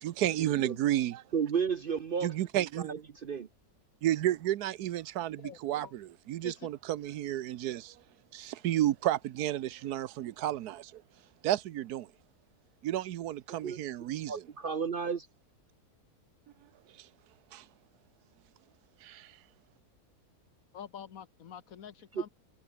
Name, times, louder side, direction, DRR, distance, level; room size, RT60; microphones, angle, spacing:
voice 1, 0.0-1.2 2.2-2.9 4.0-8.0 8.3-11.0 11.4-12.1 12.8-14.3 17.0-17.1 17.5-17.6 19.0-19.3, right 13 dB, 85° right, 1.3 m, -32 dB
voice 2, 1.3-2.3 2.8-3.5 13.6-13.8 14.3-15.3 22.1-22.3, right 6 dB, 50° right, 0.7 m, -33 dB
voice 3, 5.4-5.9 6.4-6.7 20.7-22.3, left 8 dB, 65° left, 1.5 m, -47 dB
omnidirectional pair, 1.6 m